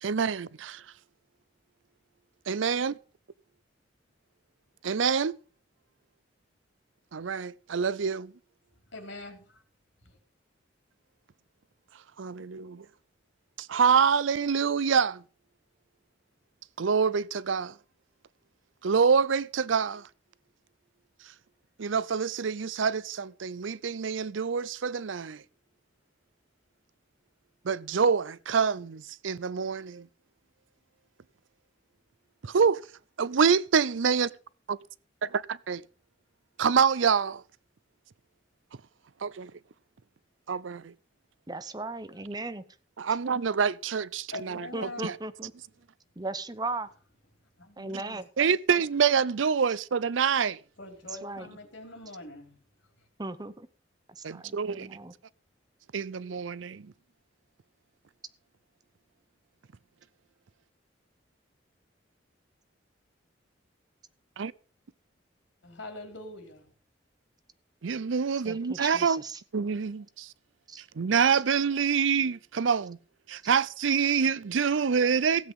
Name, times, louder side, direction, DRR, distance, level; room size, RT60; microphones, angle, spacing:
voice 1, 0.0-0.8 2.5-3.0 4.8-5.4 7.1-8.3 12.2-12.8 13.6-15.2 16.8-17.7 18.8-20.1 21.8-25.4 27.6-30.1 32.4-32.8 33.2-34.3 34.7-34.8 35.2-35.8 36.6-37.4 39.2-39.5 40.5-40.9 43.0-44.7 45.0-45.1 48.4-50.6 54.2-54.9 55.9-56.9 64.4-64.5 67.8-69.2 69.5-70.3 71.0-73.0 73.3-75.5, right 6 dB, 85° right, 0.5 m, -26 dB
voice 2, 8.9-9.4 10.0-10.2 44.3-45.1 47.6-48.2 50.8-52.6 65.6-66.7, left 2 dB, 70° left, 4.0 m, -43 dB
voice 3, 41.5-42.7 44.7-45.5 46.2-46.9 47.8-48.3 51.1-51.6 53.2-53.7 54.1-55.1 68.4-69.4 70.7-70.8, right 2 dB, 20° right, 0.9 m, -37 dB
16.0 x 8.1 x 5.5 m
head